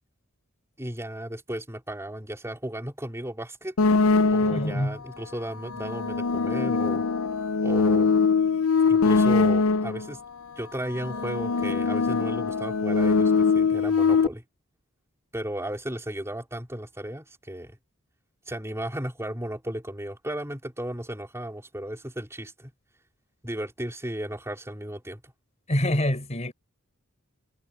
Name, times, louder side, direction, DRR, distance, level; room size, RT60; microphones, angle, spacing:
voice 1, 0.8-3.7 4.3-7.0 7.6-8.1 8.9-10.2 10.6-14.4 15.3-17.8 18.5-22.7 23.4-25.2, right 1 dB, 15° right, 3.7 m, -35 dB
sound 1, 3.8-4.9 5.6-10.1 10.9-14.3, left 4 dB, 75° left, 0.6 m, -22 dB
voice 2, 4.4-5.0 25.7-26.5, left 1 dB, 35° left, 4.1 m, -26 dB
head